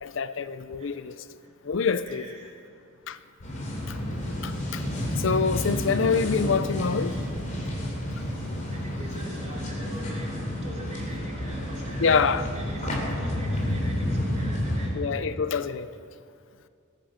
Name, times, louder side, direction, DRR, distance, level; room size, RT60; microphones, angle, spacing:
voice 1, 0.0-1.1 1.6-2.3 3.1-3.2 3.9-4.0 4.4-4.8 5.2-7.1 12.0-12.5 14.9-15.9, left 5 dB, 65° left, 0.5 m, -26 dB
voice 2, 0.8-1.5 2.0-2.6 3.4-3.5 8.7-15.1, right 1 dB, 35° right, 3.3 m, -44 dB
sound 1, 3.4-14.9, left 1 dB, 40° left, 3.9 m, -30 dB
20.0 x 10.5 x 6.5 m
head